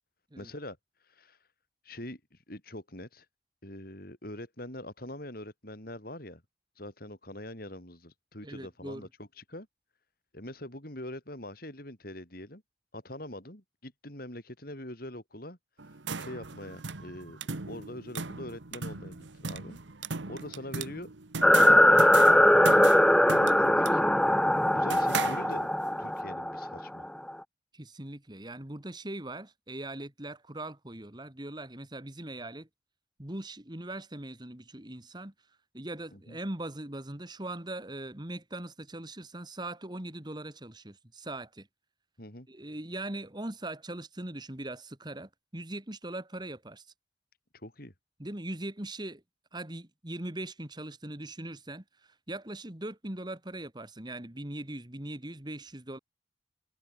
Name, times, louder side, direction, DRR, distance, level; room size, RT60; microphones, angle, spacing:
voice 1, 0.4-0.8 1.0-1.4 1.8-3.3 3.6-6.4 6.8-9.7 10.3-12.6 12.9-15.6 16.2-17.4 17.7-19.8 20.3-21.1 21.6-22.8 23.3-24.2 24.7-25.7 26.0-27.1 36.1-36.4 42.2-42.5 47.5-47.9, left 1 dB, 50° left, 6.1 m, -43 dB
voice 2, 8.4-9.1 25.0-25.1 27.7-32.7 33.2-41.7 42.5-46.9 48.2-49.2 49.5-56.0, right 1 dB, 25° right, 1.9 m, -40 dB
sound 1, 15.8-25.9, right 4 dB, 80° right, 1.4 m, -38 dB
sound 2, 21.4-27.3, left 1 dB, 5° left, 0.6 m, -21 dB
head